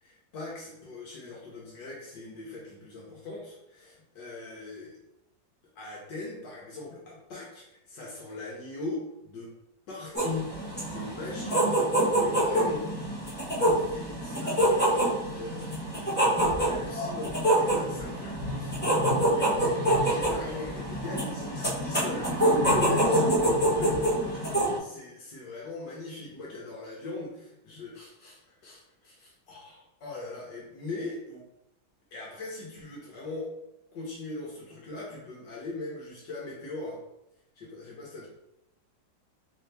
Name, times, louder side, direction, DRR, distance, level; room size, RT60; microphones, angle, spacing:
voice 1, 0.0-5.0 5.7-9.5 9.9-12.8 13.7-23.0 24.8-31.4 32.1-33.5 33.9-37.0 37.5-38.3, left 2 dB, 70° left, -4 dB, 1.4 m, -41 dB
sound 1, 10.1-24.8, right 1 dB, 10° left, 0.5 m, -26 dB
voice 2, 22.5-24.1, left 3 dB, 50° left, -3 dB, 1.4 m, -33 dB
4.1 x 2.8 x 3.3 m, 0.84 s
omnidirectional pair, 2.0 m